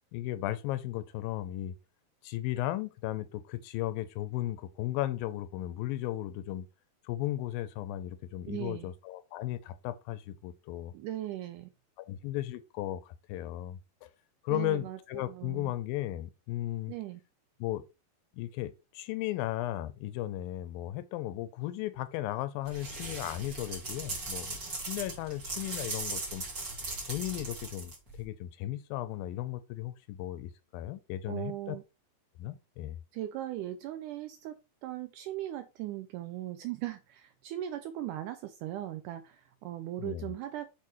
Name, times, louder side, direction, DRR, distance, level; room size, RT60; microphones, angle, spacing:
voice 1, 0.1-1.8 2.2-6.7 7.1-10.9 12.0-13.8 14.4-16.9 17.6-17.8 18.3-24.6 24.9-26.4 27.1-31.8 32.4-33.0 40.0-40.3, left 14 dB, 90° left, 2.4 m, -35 dB
voice 2, 8.5-8.9 10.9-11.7 14.5-15.0 15.3-15.7 16.9-17.2 31.3-31.8 33.1-40.7, right 13 dB, 85° right, 1.8 m, -38 dB
sound 1, 22.7-28.2, right 3 dB, 30° right, 2.0 m, -39 dB
7.6 x 4.1 x 3.1 m
omnidirectional pair, 4.1 m